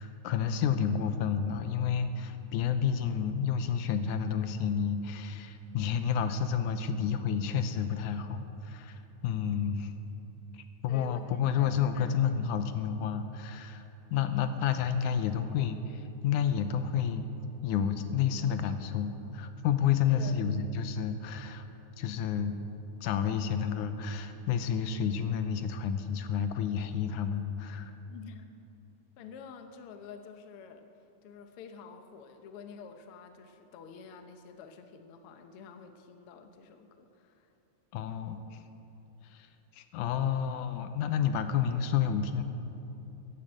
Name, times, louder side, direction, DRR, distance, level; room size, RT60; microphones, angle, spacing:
voice 1, 0.0-9.9 10.5-13.8 14.1-17.3 17.6-21.7 22.0-22.5 23.0-27.9 37.9-38.6 39.3-39.5 39.7-42.4, left 7 dB, 80° left, 9 dB, 2.2 m, -30 dB
voice 2, 10.9-12.5 20.1-20.4 28.1-28.5 29.2-30.9 31.2-37.5, left 6 dB, 65° left, 7 dB, 1.5 m, -49 dB
14.5 x 10.5 x 8.7 m, 2.9 s
omnidirectional pair, 3.5 m